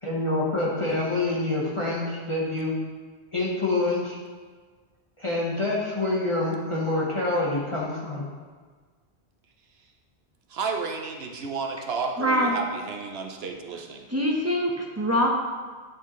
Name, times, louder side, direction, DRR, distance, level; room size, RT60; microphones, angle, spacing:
voice 1, 0.0-2.7 3.3-4.2 5.2-8.3, left 2 dB, 30° left, -6 dB, 1.2 m, -26 dB
voice 2, 10.5-14.1, right 5 dB, 70° right, 4 dB, 0.9 m, -32 dB
voice 3, 12.2-12.6 14.1-15.3, equal, 15° right, -2 dB, 0.8 m, -24 dB
9.2 x 6.2 x 3.1 m, 1.5 s
omnidirectional pair, 1.1 m